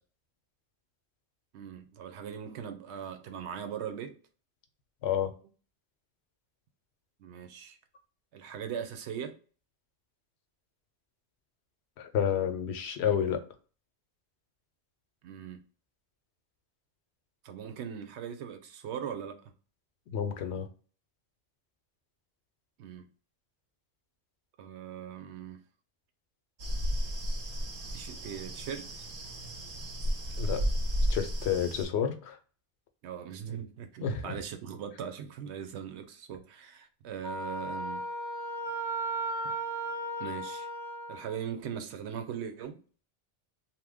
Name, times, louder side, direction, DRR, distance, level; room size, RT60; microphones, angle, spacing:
voice 1, 1.5-4.2 7.2-7.8 8.3-9.4 15.2-15.6 17.4-19.5 22.8-23.1 24.6-25.6 27.9-28.9 33.0-38.0 39.4-39.5 40.2-40.7 41.1-42.8, right 8 dB, 85° right, 0.9 m, -40 dB
voice 2, 12.0-13.4 20.1-20.7 30.4-30.6 31.1-32.4 34.0-34.3 40.3-40.4, left 8 dB, 80° left, 0.9 m, -30 dB
sound 1, 26.6-31.9, equal, 55° right, 0.8 m, -33 dB
Wind instrument woodwind instrument, 37.2-41.4, right 1 dB, 20° right, 0.6 m, -35 dB
2.9 x 2.1 x 3.4 m
omnidirectional pair, 1.1 m